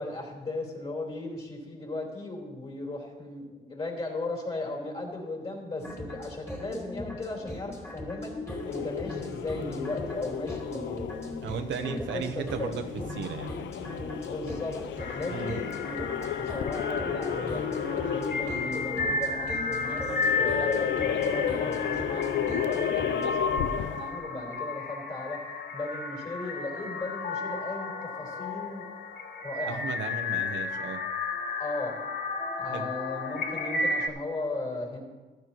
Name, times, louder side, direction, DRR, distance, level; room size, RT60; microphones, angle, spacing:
voice 1, 0.0-11.1 11.8-12.7 14.1-14.8 15.1-16.0 16.4-25.4 25.7-28.8 29.4-29.8 31.6-32.0 32.6-35.0, left 2 dB, 30° left, -2 dB, 3.9 m, -36 dB
sound 1, 5.8-23.3, left 1 dB, 15° left, 2.4 m, -38 dB
sound 2, 8.5-24.2, left 9 dB, 65° left, 0.6 m, -33 dB
voice 2, 11.4-12.8 13.2-13.5 15.3-15.5 29.7-31.0 32.7-32.9, right 6 dB, 70° right, 5 dB, 1.0 m, -35 dB
sound 3, 15.0-34.1, left 4 dB, 50° left, 1.2 m, -33 dB
15.0 x 12.0 x 3.0 m, 1.2 s
cardioid pair, 90°, 20 cm